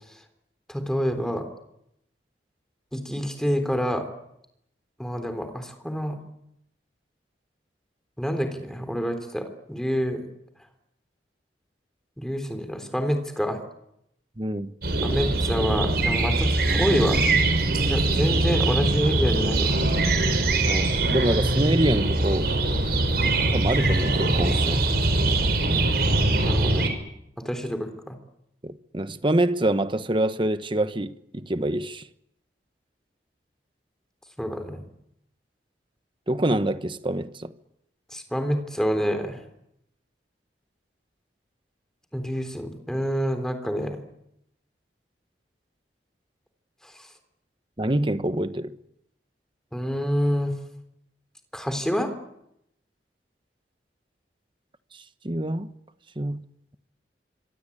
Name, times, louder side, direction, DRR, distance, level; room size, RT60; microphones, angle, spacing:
voice 1, 0.7-1.5 2.9-4.1 5.0-6.2 8.2-10.3 12.2-13.6 15.0-17.2 17.9-19.8 26.4-26.9 27.4-28.1 34.4-34.8 38.1-39.4 42.1-44.0 46.8-47.1 49.7-50.5 51.5-52.1, equal, 5° left, 3.6 m, -27 dB
voice 2, 14.4-14.7 20.6-22.5 23.2-24.8 28.6-32.1 36.3-37.5 47.8-48.7 54.9-55.7 56.2-56.5, right 1 dB, 30° right, 1.1 m, -26 dB
sound 1, 14.8-26.9, right 2 dB, 60° right, 4.8 m, -22 dB
26.0 x 24.0 x 8.6 m
head